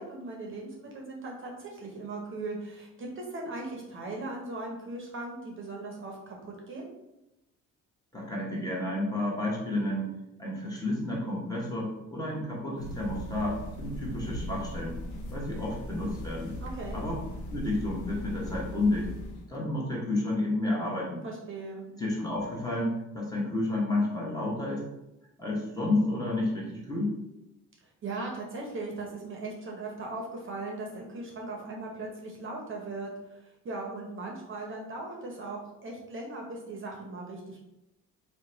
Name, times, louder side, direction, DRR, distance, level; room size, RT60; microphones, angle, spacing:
voice 1, 0.0-6.9 16.6-17.0 21.2-21.9 28.0-37.7, right 2 dB, 40° right, 0 dB, 0.7 m, -38 dB
voice 2, 8.1-10.1 10.4-15.0 15.3-16.6 16.9-17.2 17.5-19.1 19.5-21.2 21.9-24.8 25.4-27.1, left 2 dB, 10° left, -4 dB, 1.1 m, -31 dB
sound 1, 12.8-19.5, equal, 75° left, 0.7 m, -39 dB
2.8 x 2.2 x 3.9 m, 0.92 s
cardioid pair, 90°, 30 cm